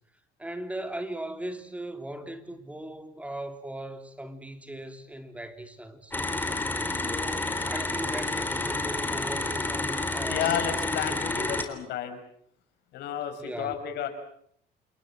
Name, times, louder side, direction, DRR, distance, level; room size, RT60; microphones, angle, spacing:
voice 1, 0.4-6.1 6.9-10.5 11.1-11.7 13.4-13.8, right 1 dB, 10° right, 8 dB, 3.5 m, -38 dB
sound 1, 6.1-11.6, left 2 dB, 10° left, 3.9 m, -30 dB
voice 2, 10.3-12.2 12.9-14.1, left 9 dB, 80° left, 7 dB, 6.0 m, -31 dB
29.0 x 22.0 x 7.7 m, 0.67 s
cardioid pair, 110°, 17 cm